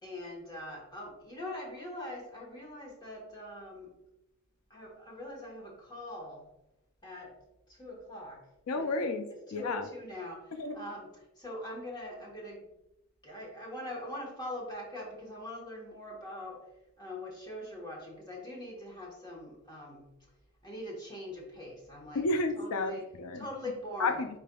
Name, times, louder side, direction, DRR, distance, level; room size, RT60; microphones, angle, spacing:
voice 1, 0.0-3.9 4.7-6.5 7.0-7.3 7.7-8.4 8.7-9.0 9.5-12.7 13.2-16.6 17.0-20.1 20.6-22.2 22.6-23.0 23.3-24.3, left 1 dB, 20° left, -2 dB, 1.1 m, -42 dB
voice 2, 8.7-9.8 10.5-10.8 22.1-23.4 24.0-24.3, left 2 dB, 85° left, 7 dB, 0.4 m, -31 dB
5.1 x 4.2 x 2.3 m, 0.89 s
head